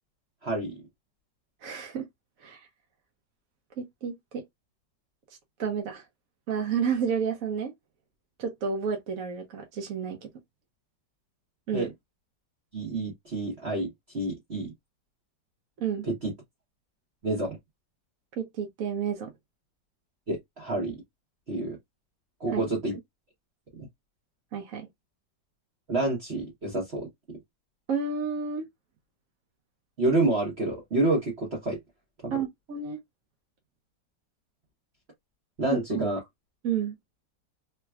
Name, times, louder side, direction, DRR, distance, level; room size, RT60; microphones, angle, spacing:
voice 1, 0.4-0.7 11.7-11.9 12.7-14.7 16.0-16.3 17.2-17.6 20.3-21.0 21.5-21.8 22.4-23.0 23.8-23.9 25.9-27.1 30.0-31.8 32.2-32.4 35.6-36.2, right 2 dB, 40° right, 1.2 m, -28 dB
voice 2, 1.6-2.1 2.4-2.6 3.8-4.4 5.6-6.0 6.5-7.7 8.4-10.3 11.7-11.9 15.8-16.1 18.4-19.3 22.5-22.6 24.5-24.9 27.9-28.7 32.3-33.0 35.7-36.1 36.6-36.9, right 6 dB, 55° right, 1.0 m, -30 dB
3.3 x 2.9 x 2.3 m
omnidirectional pair, 2.0 m